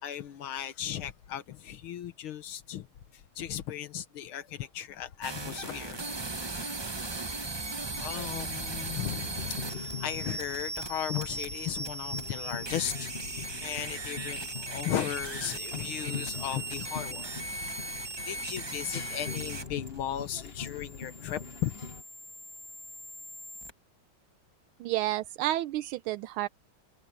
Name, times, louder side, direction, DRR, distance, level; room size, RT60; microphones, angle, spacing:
voice 1, 0.0-2.9 3.1-6.1 8.0-17.3 18.3-21.8, left 11 dB, 90° left, 1.9 m, -36 dB
sound 1, 5.2-23.7, right 2 dB, 40° right, 0.3 m, -38 dB
sound 2, 8.8-22.0, left 6 dB, 40° left, 1.1 m, -43 dB
voice 2, 24.8-26.5, right 15 dB, 85° right, 1.4 m, -30 dB
omnidirectional pair, 2.3 m